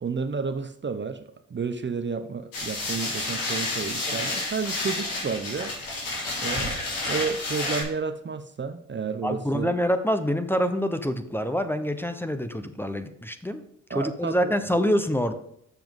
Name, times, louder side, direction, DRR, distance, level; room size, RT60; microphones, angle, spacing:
voice 1, 0.0-5.7 6.4-9.8 13.9-14.8, right 5 dB, 35° right, 9 dB, 0.8 m, -31 dB
sound 1, 2.5-7.8, left 2 dB, 90° left, 3.3 m, -30 dB
voice 2, 9.2-13.6 13.9-15.3, equal, 5° left, 9 dB, 1.0 m, -26 dB
7.2 x 5.9 x 5.5 m, 0.73 s
supercardioid pair, 55°, 33 cm